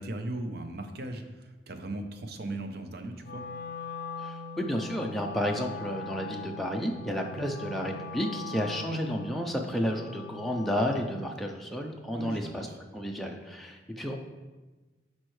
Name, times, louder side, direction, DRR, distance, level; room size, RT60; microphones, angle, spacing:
voice 1, 0.0-3.4 12.2-12.8, right 1 dB, 55° right, 6 dB, 0.7 m, -38 dB
Wind instrument woodwind instrument, 3.2-11.2, left 3 dB, 55° left, 0.5 m, -41 dB
voice 2, 4.2-12.7 12.9-14.2, equal, ahead, 0 dB, 0.4 m, -31 dB
11.0 x 4.3 x 3.2 m, 1.2 s
head